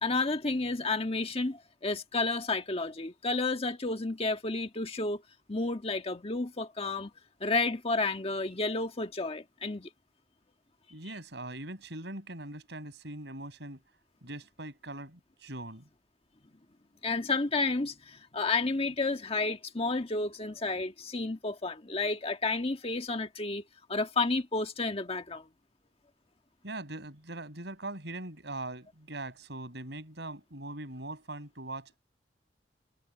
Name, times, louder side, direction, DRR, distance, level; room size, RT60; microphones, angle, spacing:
voice 1, 0.0-5.2 5.5-7.1 7.4-9.9 17.0-23.6 23.9-25.5, left 3 dB, 35° left, 1.6 m, -31 dB
voice 2, 10.9-13.8 14.2-15.9 26.6-32.0, right 2 dB, 70° right, 7.3 m, -41 dB
head